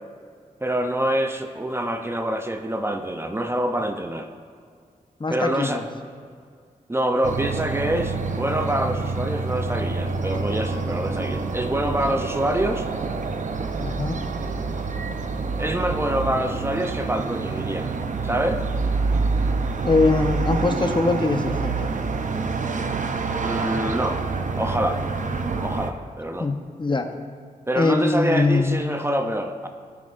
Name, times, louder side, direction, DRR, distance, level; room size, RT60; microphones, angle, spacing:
voice 1, 0.6-4.3 5.3-5.8 6.9-12.9 15.6-17.9 18.2-18.6 23.4-24.2 24.6-25.0 25.6-26.5 27.7-29.7, right 1 dB, 15° right, 6 dB, 0.6 m, -26 dB
voice 2, 5.2-5.8 13.8-14.2 19.8-21.9 26.4-27.1 27.8-28.8, left 3 dB, 30° left, 6 dB, 0.9 m, -22 dB
sound 1, 7.2-25.9, right 4 dB, 55° right, 0.7 m, -27 dB
17.5 x 6.0 x 2.6 m, 2.1 s
cardioid pair, 60°, 15 cm